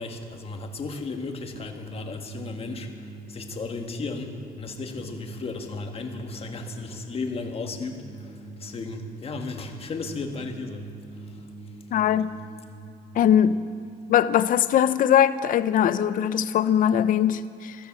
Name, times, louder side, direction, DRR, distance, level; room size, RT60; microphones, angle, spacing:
voice 1, 0.0-2.9 3.3-10.8 11.3-11.4, left 3 dB, 35° left, 1.6 m, -35 dB
sound 1, 1.5-14.7, right 3 dB, 50° right, 2.0 m, -44 dB
voice 2, 11.9-12.3 13.2-13.6 14.1-17.8, left 9 dB, 55° left, 0.6 m, -21 dB
14.5 x 13.5 x 6.0 m
cardioid pair, 110°, 17 cm